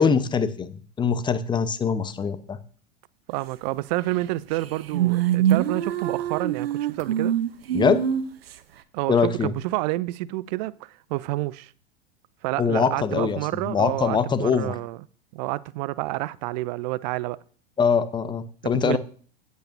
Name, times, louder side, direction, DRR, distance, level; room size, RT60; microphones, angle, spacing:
voice 1, 0.0-2.6 7.7-8.0 9.1-9.5 12.6-14.7 17.8-19.0, left 6 dB, 15° left, 0.8 m, -23 dB
voice 2, 3.3-7.3 8.9-11.7 12.4-15.0 15.3-17.4 18.6-19.0, right 19 dB, 45° right, 0.4 m, -29 dB
sound 1, 4.2-4.3 4.5-8.6, right 11 dB, 70° right, 0.8 m, -24 dB
16.5 x 8.3 x 2.6 m
figure-of-eight pair, 90°, 32 cm